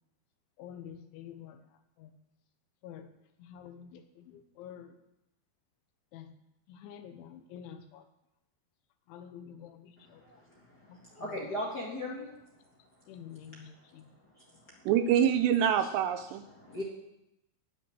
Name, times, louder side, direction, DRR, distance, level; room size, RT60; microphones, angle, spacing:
voice 1, 0.6-1.6 2.0-2.1 2.8-3.1 3.4-4.9 6.1-6.3 6.7-8.0 9.1-10.2 10.9-11.0 13.1-14.1, left 9 dB, 90° left, 8 dB, 3.5 m, -48 dB
voice 2, 10.0-12.3 13.9-14.0 14.4-14.8 15.8-15.9 16.5-16.8, left 1 dB, 50° left, -3 dB, 1.1 m, -39 dB
voice 3, 14.9-16.5, right 9 dB, 80° right, 10 dB, 2.7 m, -25 dB
14.5 x 6.3 x 10.0 m, 0.87 s
omnidirectional pair, 5.3 m